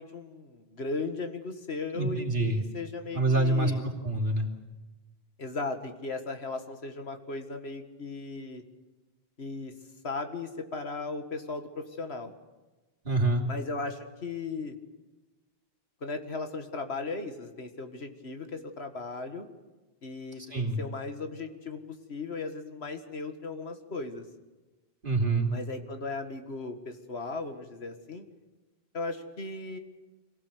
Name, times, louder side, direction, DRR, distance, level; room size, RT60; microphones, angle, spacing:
voice 1, 0.0-3.8 5.4-8.6 9.4-9.7 10.0-12.3 13.5-14.8 16.0-19.5 20.0-20.4 20.8-24.2 25.5-28.2 28.9-29.8, left 3 dB, 80° left, 7 dB, 2.1 m, -37 dB
voice 2, 2.0-2.6 3.1-3.7 4.0-4.5 13.1-13.4 20.5-20.8 25.0-25.5, right 2 dB, 55° right, 1 dB, 3.4 m, -26 dB
25.0 x 18.0 x 8.3 m, 1.2 s
omnidirectional pair, 1.1 m